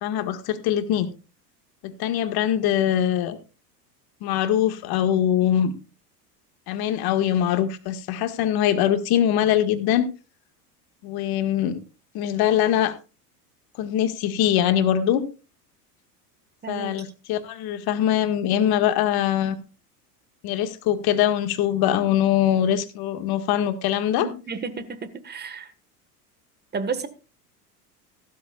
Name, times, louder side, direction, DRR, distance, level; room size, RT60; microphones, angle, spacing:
voice 1, 0.0-1.1 1.8-3.4 4.2-5.7 6.7-10.1 11.0-11.8 12.1-12.9 13.8-15.2 16.7-19.6 20.4-24.3, left 10 dB, 50° left, 1.9 m, -22 dB
voice 2, 16.6-17.0 24.2-25.7 26.7-27.1, right 5 dB, 20° right, 1.6 m, -32 dB
15.5 x 13.0 x 2.4 m
hypercardioid pair, 85°, 47 cm